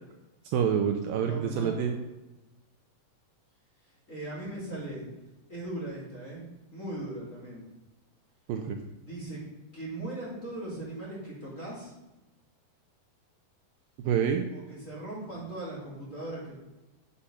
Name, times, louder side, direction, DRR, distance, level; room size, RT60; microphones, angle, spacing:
voice 1, 0.5-1.9 8.5-8.8 14.0-14.5, right 8 dB, 80° right, 5 dB, 2.2 m, -27 dB
voice 2, 1.2-2.0 3.8-5.0 5.5-7.7 9.0-9.4 9.7-11.9 14.5-16.6, right 1 dB, 20° left, -7 dB, 3.1 m, -39 dB
8.5 x 6.4 x 5.7 m, 1.0 s
omnidirectional pair, 4.4 m